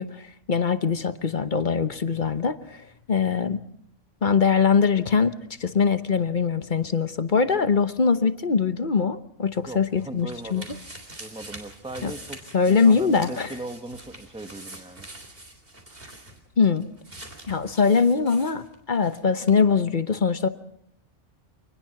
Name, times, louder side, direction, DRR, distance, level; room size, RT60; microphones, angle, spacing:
voice 1, 0.0-2.8 3.1-3.6 4.2-5.3 5.6-10.6 12.0-12.1 12.5-13.5 16.6-16.9 17.5-20.5, left 5 dB, 40° left, 12 dB, 1.1 m, -22 dB
sound 1, 9.6-19.2 19.5-19.6, right 1 dB, 45° right, 3.9 m, -44 dB
voice 2, 9.7-10.7 11.2-12.4 12.6-15.1, right 2 dB, 5° right, 8 dB, 1.3 m, -38 dB
25.0 x 20.0 x 6.0 m, 0.72 s
omnidirectional pair, 1.3 m